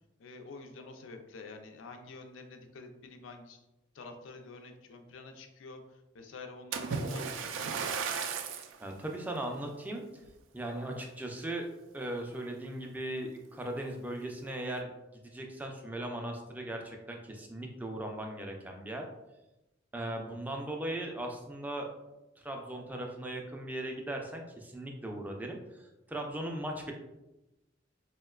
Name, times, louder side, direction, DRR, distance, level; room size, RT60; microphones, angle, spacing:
voice 1, 0.2-3.6 3.9-7.5, left 3 dB, 85° left, 6 dB, 0.4 m, -48 dB
Splash splatter, 6.7-8.8 9.4-9.6 10.2-10.3, right 5 dB, 85° right, 0.3 m, -35 dB
voice 2, 8.8-10.1 10.5-11.7 11.9-14.9 15.2-19.0 19.9-21.9 22.4-26.9, right 1 dB, 10° right, 1 dB, 0.3 m, -38 dB
4.2 x 2.1 x 2.3 m, 0.97 s
head